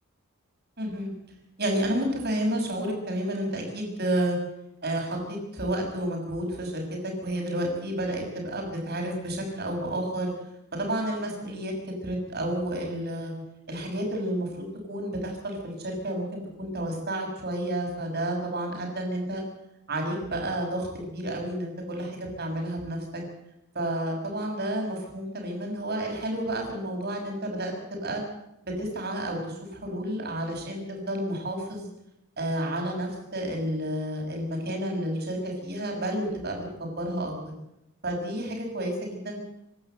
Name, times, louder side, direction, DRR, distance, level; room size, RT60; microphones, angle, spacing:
voice 1, 0.8-1.1 1.6-4.4 4.8-10.3 10.7-11.7 12.0-13.3 13.7-19.4 19.9-23.2 23.7-28.2 28.8-31.9 32.4-37.5 38.0-39.4, right 1 dB, 50° right, 2 dB, 6.5 m, -31 dB
26.0 x 12.5 x 8.0 m, 0.85 s
head